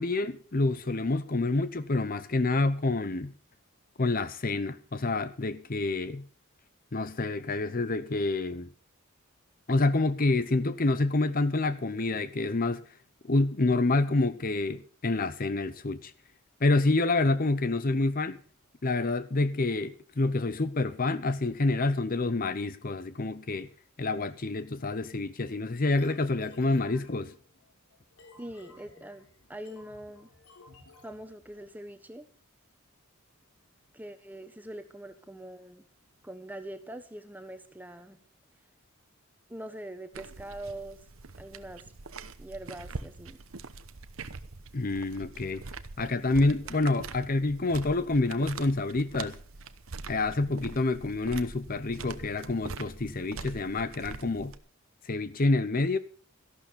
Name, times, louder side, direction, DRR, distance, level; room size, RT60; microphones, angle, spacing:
voice 1, 0.0-3.3 4.0-6.2 6.9-8.7 9.7-12.8 13.3-16.1 16.6-18.4 18.8-23.7 24.0-27.3 44.7-45.6 46.0-49.4 50.1-54.5 55.0-56.0, left 2 dB, 40° left, 13 dB, 0.8 m, -27 dB
sound 1, 26.0-31.7, left 2 dB, 90° left, 4.0 m, -56 dB
voice 2, 28.4-30.3 31.0-32.3 33.9-35.8 36.2-38.2 39.5-41.1 41.4-41.8 42.4-43.4, right 1 dB, 10° right, 9 dB, 1.3 m, -43 dB
sound 2, 40.1-54.6, right 4 dB, 70° right, 1.0 m, -43 dB
14.0 x 12.0 x 5.2 m, 0.43 s
head